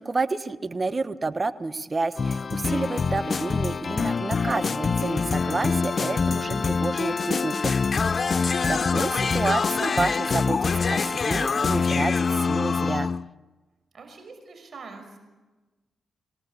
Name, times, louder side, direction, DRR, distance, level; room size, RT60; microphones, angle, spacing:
voice 1, 0.0-7.7 8.3-13.1, right 3 dB, 35° right, 12 dB, 1.4 m, -30 dB
sound 1, 2.2-13.3, left 5 dB, 50° left, 0.7 m, -25 dB
voice 2, 6.4-7.5 8.6-8.8 13.9-15.2, right 4 dB, 55° right, 5 dB, 5.8 m, -44 dB
25.5 x 18.5 x 8.2 m, 1.2 s
supercardioid pair, 55°, 0 cm